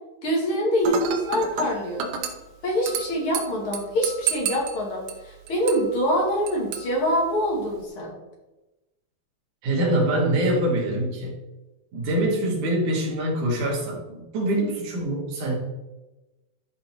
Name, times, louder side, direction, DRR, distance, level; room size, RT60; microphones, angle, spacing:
voice 1, 0.2-2.1 2.6-8.1, equal, 40° left, -2 dB, 2.4 m, -25 dB
Dishes pots and pans / Glass, 0.8-7.8, right 8 dB, 75° right, 2.8 m, -33 dB
voice 2, 9.6-11.4 11.9-15.5, right 1 dB, 50° right, -2 dB, 3.2 m, -24 dB
12.0 x 5.3 x 4.4 m, 1.1 s
omnidirectional pair, 5.0 m